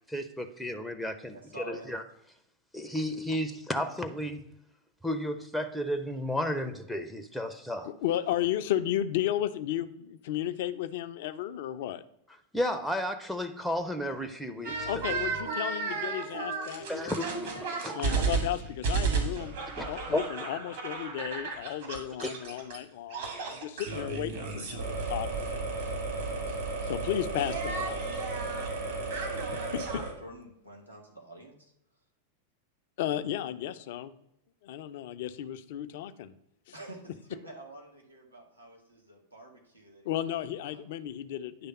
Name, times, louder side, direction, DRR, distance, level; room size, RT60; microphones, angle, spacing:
voice 1, 0.1-1.4 1.7-2.0 2.7-4.4 5.0-7.9 12.5-14.9 16.9-18.2 19.7-20.2 22.2-22.3, equal, ahead, 6 dB, 0.5 m, -33 dB
voice 2, 1.3-1.9 30.2-31.7 36.7-40.1 40.6-40.8, right 1 dB, 85° right, -1 dB, 1.6 m, -48 dB
voice 3, 7.9-12.0 14.9-17.2 17.9-19.5 19.8-25.6 26.5-26.6 26.8-28.1 29.1-29.4 29.7-30.0 33.0-34.1 34.6-36.3 40.0-41.7, left 12 dB, 55° left, 12 dB, 0.5 m, -34 dB
sound 1, 14.6-22.8 23.1-30.1, right 4 dB, 55° right, 1.9 m, -33 dB
9.5 x 3.4 x 5.5 m, 0.82 s
figure-of-eight pair, 90°, 0 cm